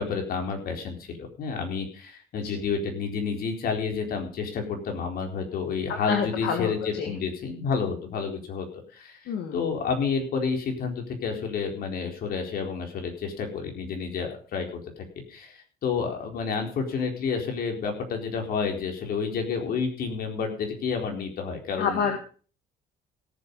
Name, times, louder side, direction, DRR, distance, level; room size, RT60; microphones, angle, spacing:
voice 1, 0.0-8.7 8.9-22.1, left 5 dB, 60° left, 3 dB, 4.2 m, -30 dB
voice 2, 6.1-7.2 9.3-9.6 21.8-22.2, left 6 dB, 75° left, 5 dB, 1.9 m, -28 dB
17.0 x 7.5 x 5.4 m, 0.40 s
cardioid pair, 110°, 17 cm